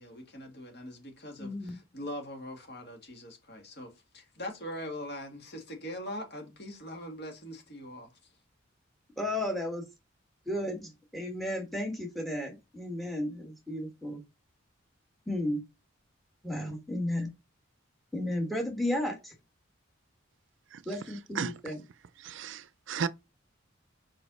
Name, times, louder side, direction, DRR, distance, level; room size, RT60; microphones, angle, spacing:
voice 1, 0.0-8.1, equal, 50° left, 1.9 m, -42 dB
voice 2, 1.4-1.8 9.2-9.9 10.5-14.2 15.3-15.6 16.4-17.3 18.1-19.3 20.8-21.8, left 1 dB, ahead, 1.4 m, -33 dB
voice 3, 21.3-21.8 22.2-23.1, right 6 dB, 65° right, 0.4 m, -35 dB
5.0 x 4.9 x 4.0 m
head